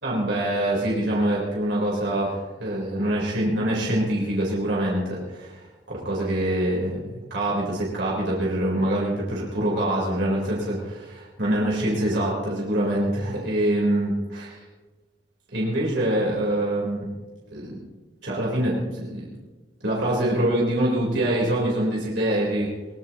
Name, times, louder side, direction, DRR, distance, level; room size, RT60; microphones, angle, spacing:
voice 1, 0.0-14.5 15.5-17.0 17.5-17.8 18.2-19.3 19.8-22.7, right 1 dB, 75° right, -4 dB, 4.2 m, -25 dB
22.5 x 19.0 x 3.0 m, 1.3 s
head